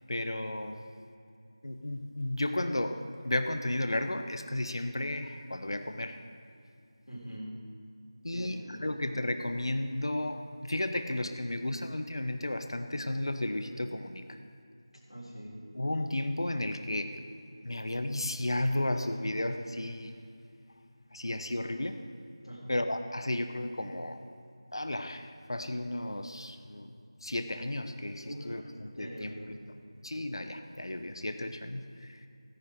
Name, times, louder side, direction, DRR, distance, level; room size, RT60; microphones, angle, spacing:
voice 1, 0.1-0.8 1.6-6.2 8.2-14.4 15.7-17.2 17.6-20.2 21.1-22.0 22.7-24.2 24.7-26.9 27.2-29.6 30.0-32.3, left 1 dB, 60° left, 7 dB, 1.0 m, -33 dB
voice 2, 7.1-7.6 8.3-9.0 15.1-15.7 22.4-22.8 28.2-28.6 28.9-29.6, equal, 90° left, -7 dB, 4.0 m, -43 dB
16.5 x 10.0 x 5.0 m, 2.4 s
figure-of-eight pair, 170°, 3 cm